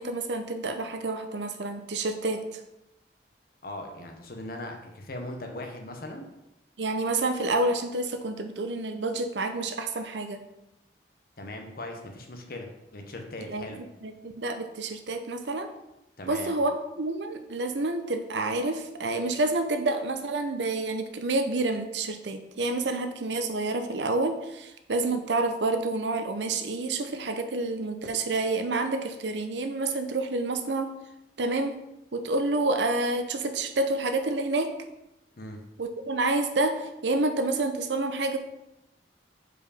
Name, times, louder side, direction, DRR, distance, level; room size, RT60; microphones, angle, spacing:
voice 1, 0.0-2.6 6.8-10.4 13.5-13.7 14.0-15.7 16.3-30.9 31.4-31.7 32.1-34.7 35.8-38.4, right 2 dB, 85° right, 7 dB, 0.7 m, -28 dB
voice 2, 3.6-6.2 11.4-13.8 16.2-16.6 35.4-35.6, left 1 dB, 55° left, 3 dB, 1.0 m, -39 dB
4.9 x 4.9 x 4.9 m, 0.91 s
head